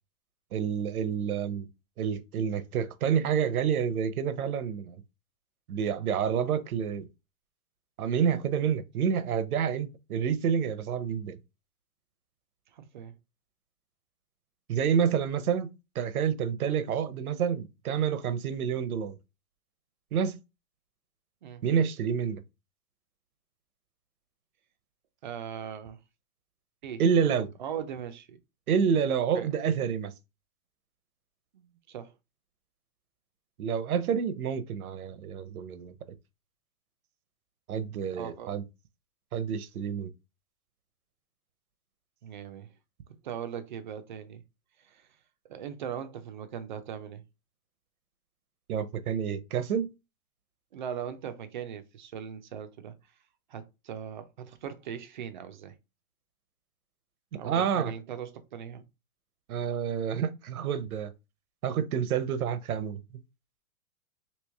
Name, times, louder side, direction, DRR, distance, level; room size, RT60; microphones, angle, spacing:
voice 1, 0.5-1.7 2.0-5.0 5.7-7.1 8.0-11.4 14.7-19.1 20.1-20.4 21.6-22.4 27.0-27.5 28.7-30.1 33.6-35.9 37.7-38.6 39.3-40.1 48.7-49.9 57.4-57.9 59.5-61.1 61.6-63.0, right 7 dB, 90° right, 0.7 m, -28 dB
voice 2, 12.7-13.1 21.4-21.6 25.2-26.0 26.8-27.0 27.6-28.4 29.3-29.5 31.5-32.1 38.1-38.5 42.2-42.7 43.2-44.4 44.8-45.0 45.5-47.2 50.7-52.9 53.5-55.7 57.3-58.8, right 8 dB, 35° right, 0.4 m, -39 dB
3.1 x 2.9 x 3.4 m
hypercardioid pair, 155°, 42 cm